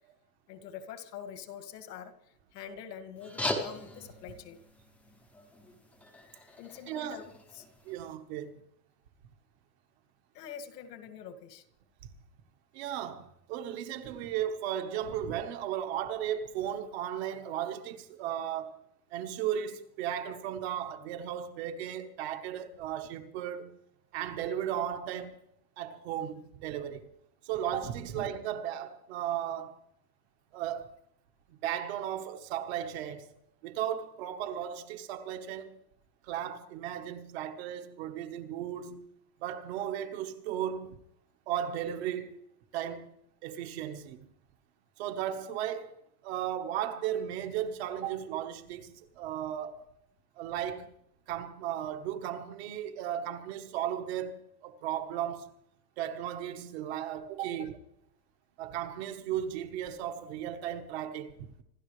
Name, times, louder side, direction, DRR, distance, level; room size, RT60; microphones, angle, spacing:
voice 1, 0.5-4.6 6.6-7.2 7.5-7.7 10.3-11.7 57.6-57.7, left 8 dB, 80° left, 2.4 m, -45 dB
sound 1, 3.2-8.1, left 1 dB, 5° left, 0.8 m, -40 dB
voice 2, 6.9-7.2 7.8-8.5 12.7-18.8 19.1-23.8 24.1-25.4 25.8-27.1 27.4-29.8 30.5-30.9 31.5-33.3 33.6-35.8 36.2-39.1 39.4-41.0 41.5-42.4 42.7-43.1 43.4-44.2 45.0-49.8 50.4-50.9 51.3-55.5 56.0-57.7 58.6-61.4, right 10 dB, 40° right, 1.3 m, -35 dB
26.5 x 13.0 x 3.3 m
supercardioid pair, 180°, 48 cm